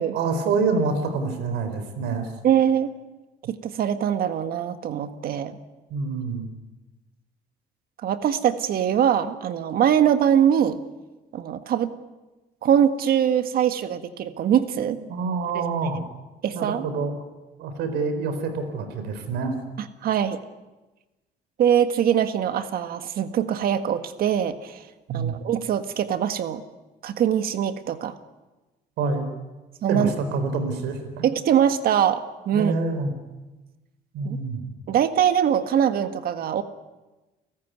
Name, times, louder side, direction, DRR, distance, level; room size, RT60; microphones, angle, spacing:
voice 1, 0.1-2.3 5.9-6.5 15.1-16.0 16.5-17.2 17.6-19.6 25.1-25.3 29.0-29.3 29.9-31.2 32.5-33.1 34.1-34.7, right 4 dB, 85° right, 8 dB, 4.4 m, -26 dB
voice 2, 2.4-2.9 3.5-5.6 8.0-10.8 11.3-11.9 12.6-15.0 16.4-16.8 20.0-20.4 21.6-24.8 25.1-26.6 27.0-28.1 29.8-30.1 31.2-32.8 34.2-34.4 34.9-36.6, right 9 dB, 60° right, 9 dB, 1.7 m, -22 dB
29.5 x 14.0 x 9.5 m, 1.1 s
cardioid pair, 110°, 17 cm